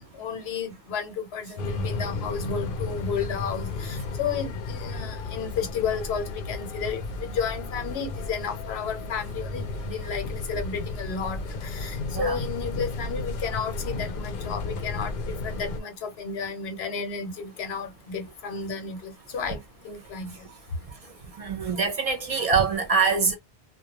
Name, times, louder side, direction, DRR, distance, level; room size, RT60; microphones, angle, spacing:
voice 1, 0.1-19.6 19.8-20.3, left 6 dB, 90° left, 1.0 m, -32 dB
sound 1, 1.6-15.8, left 3 dB, 65° left, 0.7 m, -33 dB
voice 2, 21.4-23.4, right 5 dB, 45° right, 0.5 m, -24 dB
2.2 x 2.2 x 2.9 m
omnidirectional pair, 1.0 m